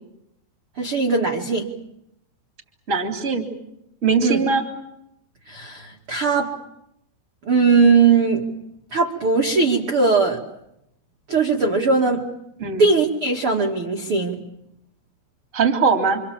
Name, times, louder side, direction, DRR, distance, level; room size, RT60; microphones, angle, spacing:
voice 1, 0.8-1.7 4.2-4.4 5.5-6.5 7.4-8.4 8.9-10.4 11.3-12.2 12.8-14.4, right 4 dB, 40° right, 0 dB, 2.1 m, -19 dB
voice 2, 2.9-3.4 4.0-4.6 12.6-12.9 15.5-16.2, right 5 dB, 20° right, 4 dB, 2.8 m, -20 dB
28.5 x 26.5 x 7.5 m, 0.82 s
omnidirectional pair, 5.8 m